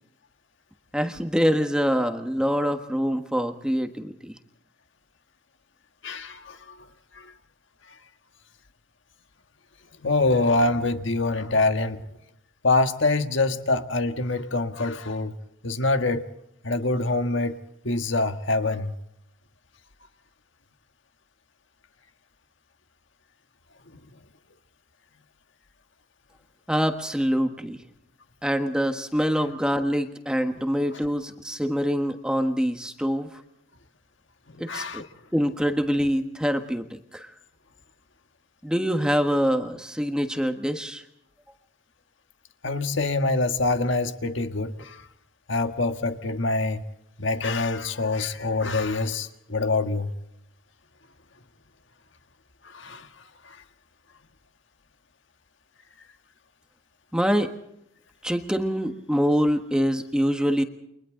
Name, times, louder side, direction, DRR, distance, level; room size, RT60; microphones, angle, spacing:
voice 1, 0.9-4.3 26.7-27.8 28.4-33.3 34.6-35.0 35.3-37.3 38.6-41.0 57.1-57.5 58.2-60.6, equal, 5° right, 1.3 m, -25 dB
voice 2, 6.0-6.8 7.1-7.3 10.0-12.0 12.6-15.3 15.6-16.3 16.6-18.9 34.5-35.1 42.6-45.1 45.5-46.8 47.2-50.1 52.6-53.1 53.4-53.6, left 3 dB, 65° left, 1.6 m, -25 dB
29.5 x 24.0 x 3.8 m
head